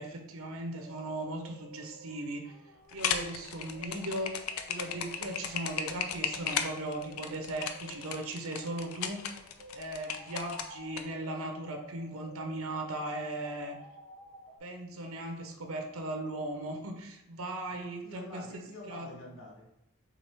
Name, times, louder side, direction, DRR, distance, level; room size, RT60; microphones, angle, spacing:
voice 1, 0.0-2.5 2.9-4.4 4.7-9.2 9.7-13.8 14.6-19.2, right 1 dB, 80° right, 4 dB, 0.7 m, -38 dB
sound 1, 0.6-14.6, equal, 60° right, 1.4 m, -53 dB
sound 2, 2.9-11.0, left 7 dB, 80° left, 0.4 m, -35 dB
voice 2, 18.0-19.7, left 2 dB, 60° left, -4 dB, 0.9 m, -46 dB
6.2 x 2.4 x 3.3 m, 0.84 s
head